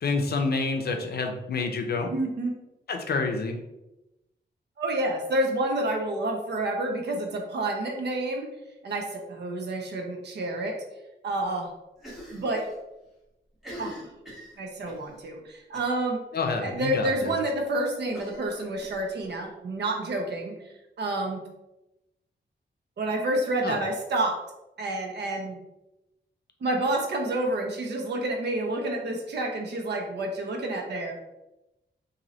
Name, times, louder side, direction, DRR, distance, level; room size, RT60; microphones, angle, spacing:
voice 1, 0.0-2.1 2.9-3.6 16.3-17.3 23.6-23.8, left 4 dB, 55° left, 4 dB, 0.5 m, -28 dB
voice 2, 2.1-2.5 4.8-8.5 8.8-10.8 11.2-11.7 12.3-12.6 13.8-14.0 14.6-16.2 16.6-20.5 21.0-21.4 23.0-24.4 24.8-25.6 26.6-31.2, right 1 dB, 65° right, 1 dB, 0.6 m, -29 dB
Cough, 12.0-12.8 13.0-13.1 13.5-15.1 15.7-16.0 16.4-16.5 16.8-16.9 18.1-19.4, equal, ahead, 1.2 m, -43 dB
3.0 x 2.7 x 3.9 m, 0.95 s
wide cardioid pair, 165°, 19 cm